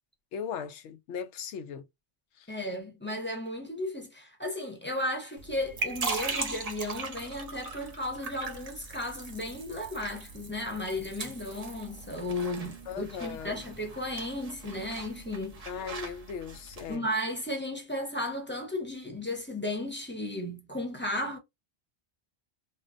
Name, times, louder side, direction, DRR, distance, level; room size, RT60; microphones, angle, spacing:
voice 1, 0.3-1.8 2.4-2.6 12.9-13.6 15.7-17.0, left 7 dB, 85° left, 0.9 m, -38 dB
voice 2, 2.5-15.6 16.9-21.4, left 1 dB, 10° left, 0.7 m, -34 dB
sound 1, 5.4-17.0, right 3 dB, 40° right, 0.8 m, -39 dB
3.7 x 2.1 x 2.5 m
omnidirectional pair, 1.2 m